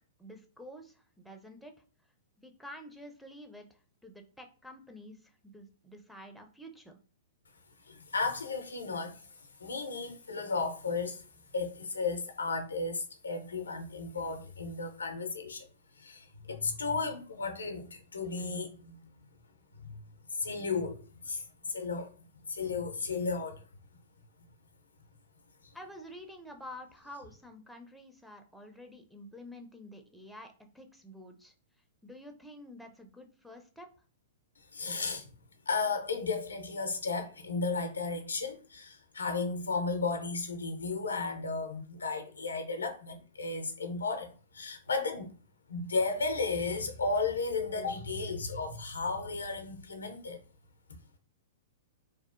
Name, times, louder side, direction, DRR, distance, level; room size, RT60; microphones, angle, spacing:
voice 1, 0.2-1.7 2.4-7.0 25.7-31.5 32.0-33.9, left 1 dB, ahead, 0.4 m, -49 dB
voice 2, 7.9-11.2 11.5-15.7 16.0-19.0 19.8-20.0 20.3-22.1 22.5-23.6 34.7-35.3 35.7-45.3 45.7-50.4, left 4 dB, 90° left, 0.5 m, -34 dB
2.7 x 2.0 x 2.4 m
hypercardioid pair, 115°, 0 cm